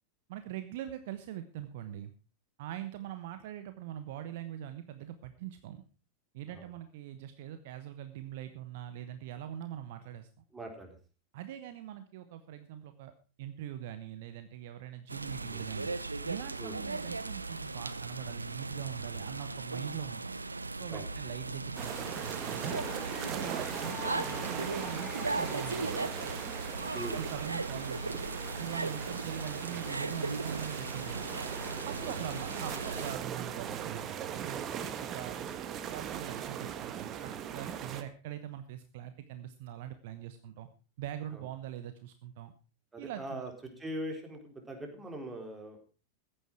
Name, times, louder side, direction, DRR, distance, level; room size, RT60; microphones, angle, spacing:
voice 1, 0.3-2.1 2.6-5.8 6.3-10.3 11.3-13.1 13.4-15.9 16.2-20.3 20.7-22.9 23.3-26.0 27.1-28.2 28.6-31.4 31.9-34.7 35.0-35.4 35.9-40.7 41.0-42.5 43.0-43.4, right 11 dB, 50° right, 10 dB, 1.1 m, -42 dB
voice 2, 10.5-11.0 15.5-15.6 16.6-16.8 20.9-21.1 26.9-27.2 28.8-28.9 32.0-32.2 34.7-34.9 41.3-41.5 42.9-43.5 43.8-45.9, right 1 dB, 10° right, 3 dB, 3.9 m, -42 dB
sound 1, 15.1-33.2, right 3 dB, 80° right, 0.7 m, -38 dB
sound 2, 21.8-38.0, right 9 dB, 30° right, 1.4 m, -40 dB
sound 3, 22.6-26.8, left 5 dB, 40° left, 4.8 m, -47 dB
15.0 x 10.0 x 4.7 m, 0.35 s
figure-of-eight pair, 90°, 0 cm